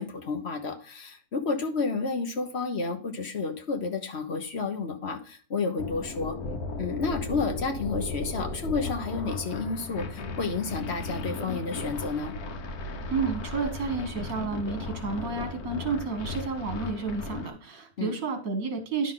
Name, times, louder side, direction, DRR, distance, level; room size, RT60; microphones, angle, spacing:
voice 1, 0.0-6.4 6.8-12.3 18.0-18.1, left 4 dB, 50° left, 6 dB, 1.2 m, -31 dB
sound 1, 5.8-17.5, left 3 dB, 85° left, 1.5 m, -36 dB
voice 2, 13.1-19.1, right 4 dB, 65° right, 5 dB, 1.9 m, -31 dB
9.9 x 6.3 x 3.8 m, 0.41 s
omnidirectional pair, 1.6 m